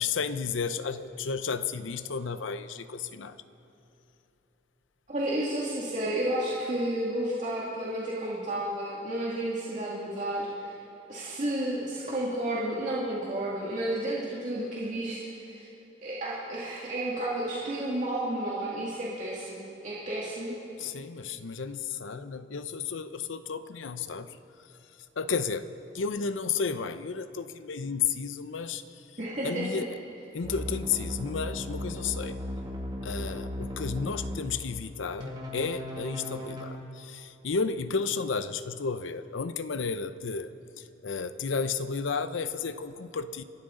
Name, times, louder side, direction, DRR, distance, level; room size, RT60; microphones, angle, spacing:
voice 1, 0.0-3.4 20.8-24.4 25.2-25.7 25.9-28.8 29.4-30.0 30.3-32.4 33.0-40.5 40.8-43.4, left 5 dB, 90° left, 12 dB, 0.6 m, -32 dB
voice 2, 5.1-10.8 11.1-15.7 16.0-20.5 29.2-29.8, right 1 dB, 40° right, -7 dB, 2.1 m, -32 dB
sound 1, 30.4-34.4 35.2-36.7, equal, 25° right, 2.1 m, -36 dB
28.0 x 12.5 x 3.8 m, 3.0 s
head